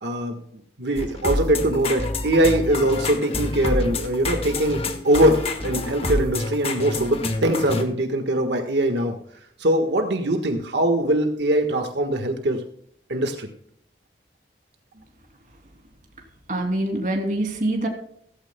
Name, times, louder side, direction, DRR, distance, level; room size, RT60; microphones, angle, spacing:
voice 1, 0.0-4.8 5.0-9.1 9.6-12.6 13.1-13.5, right 1 dB, 85° right, 5 dB, 1.5 m, -22 dB
sound 1, 1.0-7.8, left 2 dB, 35° left, 1.4 m, -28 dB
voice 2, 16.5-17.9, right 1 dB, 45° right, 3 dB, 2.8 m, -24 dB
16.0 x 15.5 x 2.2 m, 0.66 s
head